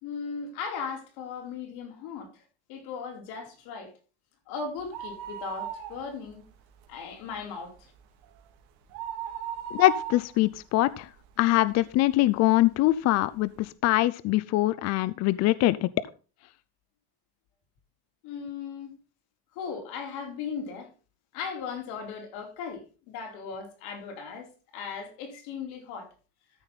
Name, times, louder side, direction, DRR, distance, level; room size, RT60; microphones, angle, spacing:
voice 1, 0.0-2.4 2.7-3.9 4.5-6.5 6.9-7.9 18.2-18.9 19.6-20.9 21.3-26.1, left 5 dB, 70° left, 4.3 m, -37 dB
sound 1, 4.8-6.4 6.8-6.9 7.3-11.7 12.2-12.3 13.1-13.2 13.4-13.5, right 9 dB, 70° right, 2.7 m, -38 dB
voice 2, 9.7-11.1 11.4-15.9, left 16 dB, 45° left, 0.5 m, -23 dB
13.5 x 7.1 x 4.0 m
cardioid pair, 160°, 39 cm